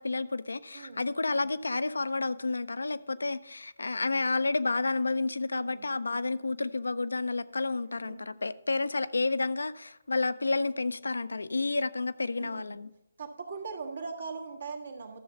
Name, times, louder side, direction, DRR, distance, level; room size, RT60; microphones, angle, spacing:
voice 1, 0.0-12.9, left 3 dB, 75° left, 0.4 m, -30 dB
voice 2, 0.7-1.1 5.5-5.9 7.9-8.2 12.4-12.8 13.2-15.2, right 4 dB, 65° right, 1.5 m, -40 dB
12.5 x 6.9 x 3.9 m
figure-of-eight pair, 145°, 0 cm